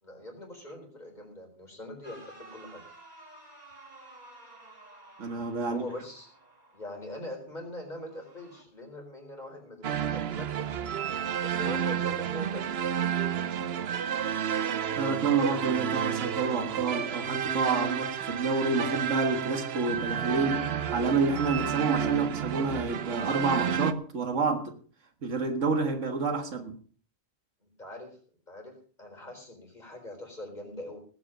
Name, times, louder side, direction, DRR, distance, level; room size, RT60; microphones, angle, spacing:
voice 1, 0.0-2.9 5.6-6.3 6.7-10.7 11.4-12.7 27.6-28.2 28.5-31.0, left 1 dB, 35° left, 4.6 m, -42 dB
sound 1, 2.0-7.2 8.0-8.6, right 2 dB, 35° right, 2.4 m, -52 dB
voice 2, 5.2-5.9 15.0-20.7 20.9-24.7 25.2-26.8, right 4 dB, 90° right, 2.0 m, -28 dB
sound 2, 9.8-23.9, right 8 dB, 60° right, 0.9 m, -31 dB
18.5 x 8.6 x 5.1 m
omnidirectional pair, 1.2 m